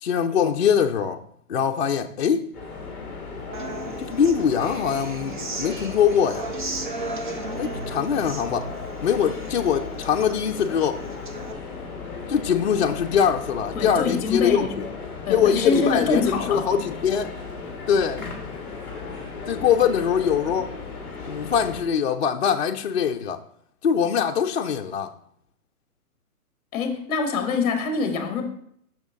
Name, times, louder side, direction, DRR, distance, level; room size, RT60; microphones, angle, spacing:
voice 1, 0.0-1.2 1.5-2.4 4.0-6.5 7.6-8.7 9.0-11.0 12.3-14.9 15.3-17.3 17.9-18.3 19.5-20.7 21.2-23.4 23.8-25.1, left 7 dB, 50° left, 0.5 m, -22 dB
sound 1, 2.5-21.8, left 4 dB, 5° left, 1.3 m, -36 dB
Human voice / Acoustic guitar, 3.5-11.5, right 2 dB, 35° right, 0.5 m, -36 dB
voice 2, 13.7-14.7 15.3-16.7 26.7-28.4, left 4 dB, 25° left, 1.1 m, -25 dB
6.3 x 5.9 x 3.6 m
hypercardioid pair, 155°, 45 cm